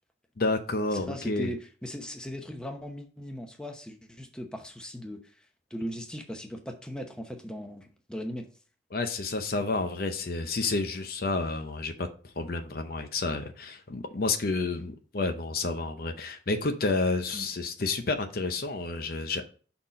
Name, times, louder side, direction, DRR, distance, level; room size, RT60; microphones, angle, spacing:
voice 1, 0.4-1.5 8.9-19.5, left 3 dB, 50° left, 0.7 m, -30 dB
voice 2, 0.9-8.5 17.3-17.4, equal, 5° left, 0.8 m, -38 dB
5.7 x 4.4 x 5.1 m
head